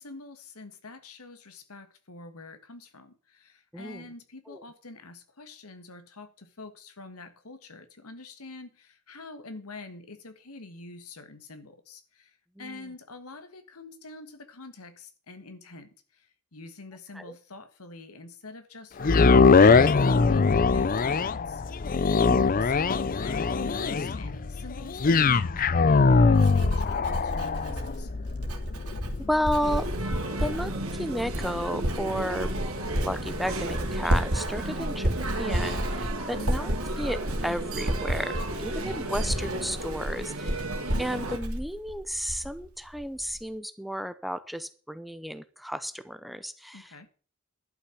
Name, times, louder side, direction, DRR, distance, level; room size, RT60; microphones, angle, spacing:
voice 1, 0.0-21.6 22.6-28.1 36.3-36.7 46.7-47.1, left 3 dB, 85° left, 1.6 m, -46 dB
voice 2, 3.7-4.1 4.5-4.6 12.6-12.8 17.2-17.3 29.3-29.9 30.4-32.5 32.9-40.6 41.0-47.1, equal, ahead, 0.6 m, -33 dB
sound 1, 19.0-33.2 33.7-33.8, left 4 dB, 40° left, 0.5 m, -23 dB
Writing, 25.6-42.7 42.9-43.4, equal, 90° right, 2.5 m, -32 dB
sound 2, 29.6-41.4, right 2 dB, 70° right, 2.4 m, -34 dB
11.5 x 5.8 x 8.0 m
head